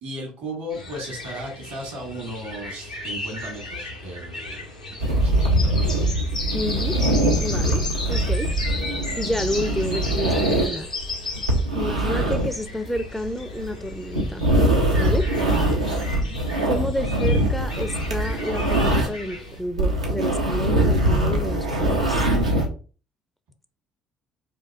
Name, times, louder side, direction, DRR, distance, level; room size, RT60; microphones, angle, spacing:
voice 1, 0.0-6.1 11.7-12.0 15.2-15.3 16.2-16.4, equal, 65° right, 1.5 m, -36 dB
sound 1, 0.7-19.6, left 2 dB, 85° left, 0.5 m, -35 dB
sound 2, 5.0-19.3 19.6-22.7, right 1 dB, 85° right, 0.5 m, -22 dB
voice 2, 6.5-7.0 7.4-7.8 8.1-8.5 9.2-10.9 11.7-14.5 14.9-15.3 16.6-22.3, left 1 dB, ahead, 0.4 m, -29 dB
4.6 x 2.4 x 2.3 m
figure-of-eight pair, 50°, 4 cm